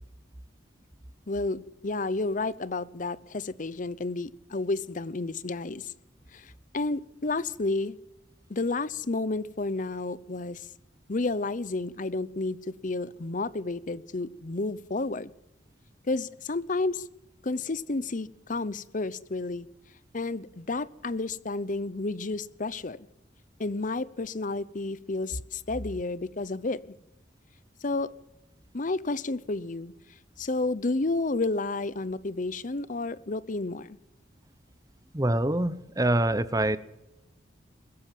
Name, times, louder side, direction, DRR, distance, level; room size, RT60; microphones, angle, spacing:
voice 1, 1.3-5.9 6.3-8.0 8.5-10.7 11.1-12.6 12.8-15.3 16.1-17.1 17.4-19.7 20.1-23.0 23.6-26.9 27.8-28.1 28.7-29.9 30.4-34.0, left 3 dB, 45° left, 19 dB, 0.8 m, -31 dB
voice 2, 35.1-36.8, right 1 dB, 20° right, 16 dB, 0.8 m, -25 dB
21.5 x 13.5 x 9.1 m, 0.91 s
head